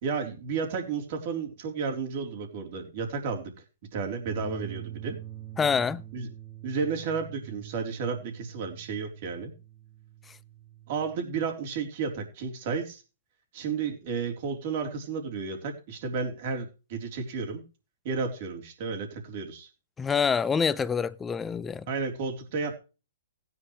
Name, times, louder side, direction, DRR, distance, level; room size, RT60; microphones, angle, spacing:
voice 1, 0.0-3.5 3.9-5.2 6.1-6.3 6.6-9.5 10.9-13.0 13.5-17.6 18.0-19.7 21.9-22.8, right 5 dB, 40° right, 3.6 m, -32 dB
sound 1, 4.3-11.2, right 12 dB, 25° right, 2.1 m, -44 dB
voice 2, 5.6-6.0 20.0-21.9, left 6 dB, 10° left, 0.5 m, -26 dB
16.0 x 9.9 x 3.2 m
hypercardioid pair, 155°, 0 cm